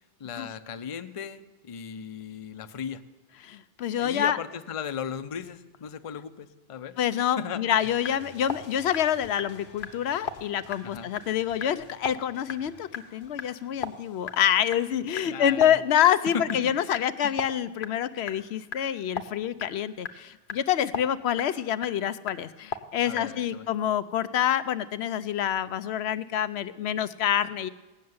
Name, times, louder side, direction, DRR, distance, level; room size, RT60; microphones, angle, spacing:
voice 1, 0.2-3.0 4.0-7.0 7.4-7.6 8.0-8.2 10.8-11.1 15.3-15.8 16.3-16.7 17.2-17.4 23.1-23.7, left 7 dB, 40° left, 10 dB, 0.6 m, -36 dB
voice 2, 3.4-4.4 7.0-27.7, left 10 dB, 85° left, 13 dB, 0.9 m, -27 dB
sound 1, 7.8-16.1 16.5-16.6 16.9-17.5 17.8-23.5, left 6 dB, 55° left, 0.9 m, -38 dB
17.5 x 6.5 x 9.4 m, 1.1 s
omnidirectional pair, 1.1 m